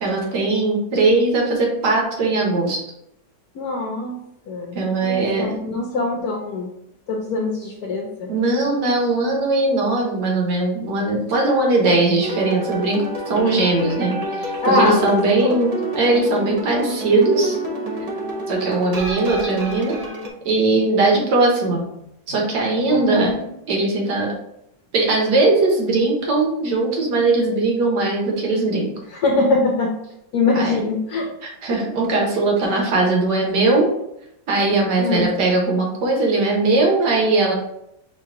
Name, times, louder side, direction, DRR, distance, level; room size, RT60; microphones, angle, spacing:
voice 1, 0.0-2.8 4.7-5.6 8.3-17.6 18.5-20.0 20.4-21.9 22.3-23.3 23.7-24.3 24.9-28.9 30.5-30.8 31.6-33.9 34.5-37.5, right 2 dB, 70° right, 0 dB, 1.7 m, -19 dB
voice 2, 3.5-4.2 4.5-6.7 7.1-8.3 14.6-15.6 22.9-23.3 29.1-30.0 30.3-31.3 32.7-32.8 35.0-35.3, left 3 dB, 65° left, -1 dB, 1.1 m, -22 dB
sound 1, 12.2-20.3, right 1 dB, 50° right, 0.4 m, -28 dB
4.8 x 2.8 x 3.6 m, 0.78 s
omnidirectional pair, 1.9 m